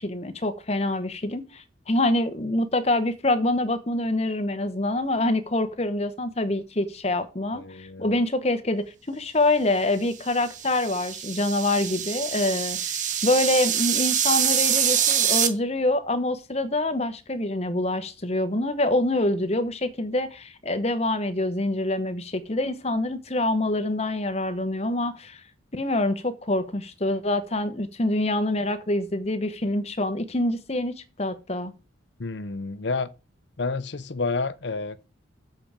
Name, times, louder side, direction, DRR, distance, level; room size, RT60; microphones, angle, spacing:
voice 1, 0.0-25.4 25.7-31.7, left 1 dB, 35° left, 1.0 m, -26 dB
voice 2, 7.5-8.1 32.2-33.1 33.6-35.1, left 3 dB, 65° left, 0.7 m, -30 dB
sound 1, 10.3-15.5, right 9 dB, 40° right, 1.0 m, -25 dB
7.8 x 4.9 x 7.2 m
head